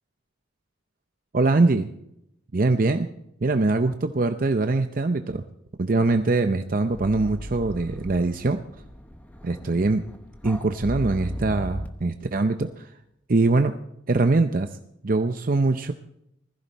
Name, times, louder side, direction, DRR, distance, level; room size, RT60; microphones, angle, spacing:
voice 1, 1.3-1.9 2.5-3.1 3.4-5.4 5.8-8.6 9.4-10.0 10.4-12.9 13.3-13.7 14.1-14.7 15.0-15.9, right 3 dB, 45° right, 7 dB, 0.6 m, -22 dB
sound 1, 6.8-11.9, equal, 10° left, 1.0 m, -37 dB
20.5 x 15.0 x 4.1 m, 0.80 s
head